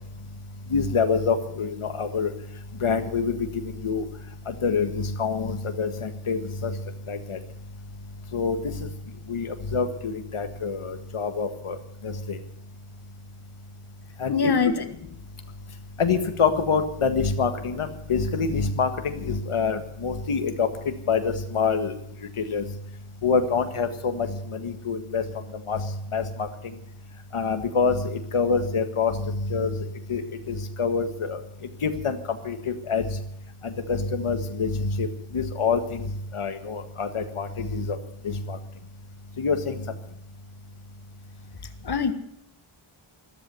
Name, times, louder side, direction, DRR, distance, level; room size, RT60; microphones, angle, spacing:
voice 1, 0.7-2.3 2.8-3.4 3.8-4.0 4.6-6.7 7.1-7.4 8.3-8.6 9.3-11.8 12.0-12.4 14.2-14.5 16.0-20.7 21.1-21.9 22.5-22.6 23.2-24.3 24.6-25.2 25.7-25.8 26.1-26.5 27.3-28.0 28.3-29.1 29.5-29.7 30.1-30.2 30.5-31.4 31.8-32.2 32.4-32.6 32.9-33.0 33.6-35.1 35.3-36.0 36.3-38.0 38.2-38.6 39.4-39.7, left 5 dB, 85° left, 7 dB, 1.7 m, -26 dB
voice 2, 14.3-14.7 41.8-42.1, left 5 dB, 50° left, 8 dB, 1.5 m, -22 dB
13.5 x 13.5 x 7.6 m, 0.73 s
wide cardioid pair, 105°, 50 cm